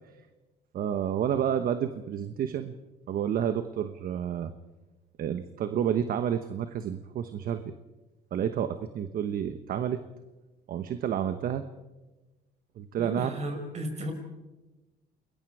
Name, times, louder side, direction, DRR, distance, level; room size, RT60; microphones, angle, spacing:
voice 1, 0.7-2.7 3.1-4.5 5.2-7.7 8.3-10.0 10.7-11.6 12.8-13.4, right 9 dB, 60° right, 10 dB, 1.1 m, -30 dB
voice 2, 13.0-14.1, right 1 dB, 40° right, 4 dB, 5.7 m, -34 dB
29.0 x 21.0 x 4.9 m, 1.1 s
cardioid pair, 110°, 17 cm